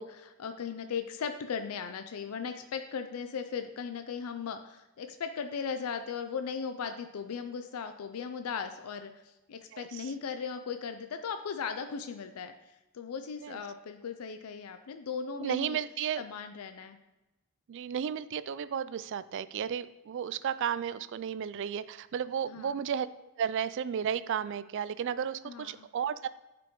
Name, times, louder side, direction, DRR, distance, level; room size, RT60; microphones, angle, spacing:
voice 1, 0.0-12.5 12.9-15.8 16.2-17.0 22.5-22.7 25.4-25.9, left 6 dB, 90° left, 8 dB, 0.4 m, -37 dB
voice 2, 9.7-10.1 13.4-13.6 15.4-16.2 17.7-23.1 23.4-26.3, right 8 dB, 60° right, 15 dB, 0.3 m, -33 dB
9.2 x 5.1 x 3.0 m, 1.0 s
head